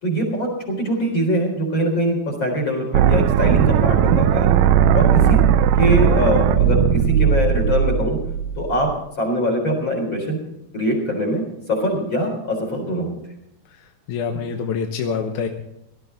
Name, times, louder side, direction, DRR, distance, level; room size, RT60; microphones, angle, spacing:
voice 1, 0.0-4.5 4.9-5.4 5.8-8.2 8.6-8.9 9.2-10.4 10.7-11.4 11.7-13.2, equal, 30° left, 3 dB, 4.3 m, -22 dB
sound 1, 2.9-8.9, right 9 dB, 85° right, 1.9 m, -17 dB
voice 2, 14.1-15.5, left 6 dB, 70° left, 4 dB, 2.1 m, -25 dB
18.0 x 13.0 x 4.0 m, 0.80 s
omnidirectional pair, 4.5 m